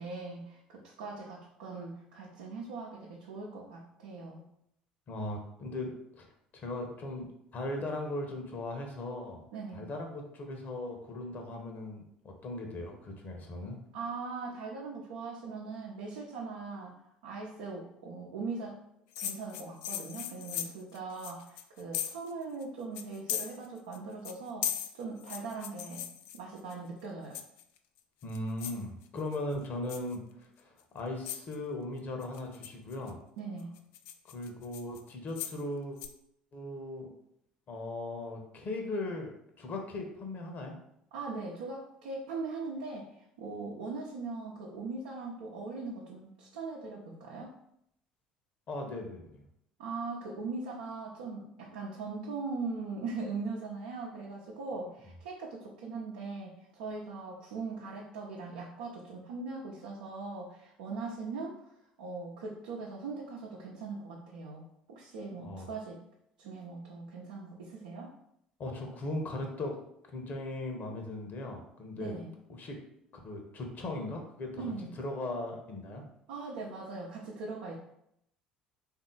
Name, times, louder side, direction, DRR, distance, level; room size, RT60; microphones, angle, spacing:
voice 1, 0.0-4.4 9.5-9.9 13.9-16.9 17.2-18.8 19.2-24.7 24.9-26.1 26.3-27.4 33.4-33.7 41.1-47.5 49.8-61.6 62.0-66.0 66.4-68.1 72.0-72.3 74.6-74.9 76.3-77.7, right 3 dB, 70° right, -3 dB, 0.7 m, -40 dB
voice 2, 5.1-6.3 6.5-9.4 9.7-13.8 28.2-33.2 34.3-36.0 36.5-37.1 37.7-39.3 39.6-40.8 48.7-49.4 65.4-65.7 68.6-69.8 70.1-72.1 72.6-72.8 73.2-74.6 75.0-76.1, left 2 dB, 45° left, 3 dB, 1.0 m, -38 dB
sound 1, 19.2-22.3 22.6-22.7 23.0-24.0 24.2-26.7 27.3-27.8 28.2-28.8 29.2-29.5 29.9-30.2 30.8-30.9 31.3-31.6 32.2-33.1 33.6-35.6 36.0-36.1, left 10 dB, 60° left, 0.4 m, -38 dB
3.8 x 2.8 x 3.8 m, 0.74 s
figure-of-eight pair, 60°, 4 cm